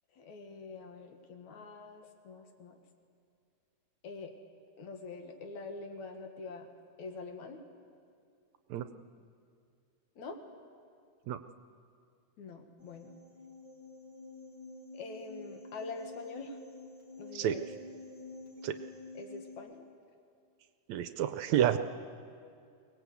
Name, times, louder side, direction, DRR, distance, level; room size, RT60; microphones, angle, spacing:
voice 1, 0.1-2.8 4.0-4.3 4.8-6.7 7.0-7.6 10.2-10.4 12.4-13.1 14.9-16.6 17.2-17.7 19.1-19.9, left 3 dB, 70° left, 4 dB, 3.0 m, -45 dB
sound 1, 12.8-19.6, left 3 dB, 40° left, 4.6 m, -49 dB
voice 2, 20.9-21.8, right 11 dB, 75° right, 10 dB, 1.8 m, -29 dB
23.5 x 19.0 x 8.2 m, 2.4 s
omnidirectional pair, 3.5 m